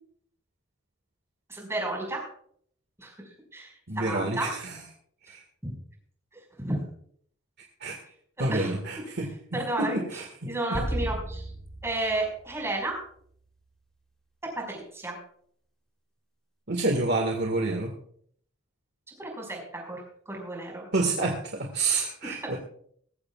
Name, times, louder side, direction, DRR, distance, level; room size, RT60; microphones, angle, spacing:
voice 1, 1.5-2.2 3.0-4.5 5.3-5.4 5.6-5.7 6.6-6.8 8.4-8.7 9.5-10.0 10.4-11.5 11.8-13.0 14.6-15.2 19.2-20.9 22.2-22.4, right 2 dB, 15° right, 0 dB, 5.4 m, -32 dB
voice 2, 3.9-4.8 5.2-5.4 7.8-8.0 8.4-9.3 9.8-10.5 16.7-17.9 20.9-22.6, right 2 dB, 60° right, 2 dB, 1.8 m, -28 dB
sound 1, 10.7-13.3, right 1 dB, 5° left, 3.3 m, -35 dB
20.0 x 15.0 x 2.4 m, 0.63 s
head